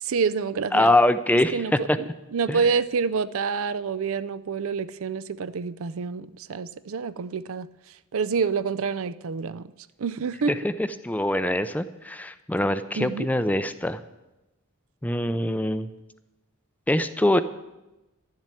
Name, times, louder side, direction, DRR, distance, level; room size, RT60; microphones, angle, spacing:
voice 1, 0.0-0.9 1.5-7.7 8.1-9.7 10.0-10.5 13.0-13.3, right 5 dB, 65° right, 16 dB, 0.5 m, -27 dB
voice 2, 0.7-2.0 2.5-2.6 10.5-14.0 15.0-15.9 16.9-17.4, left 1 dB, 5° left, 12 dB, 0.5 m, -23 dB
11.5 x 7.5 x 9.8 m, 1.0 s
head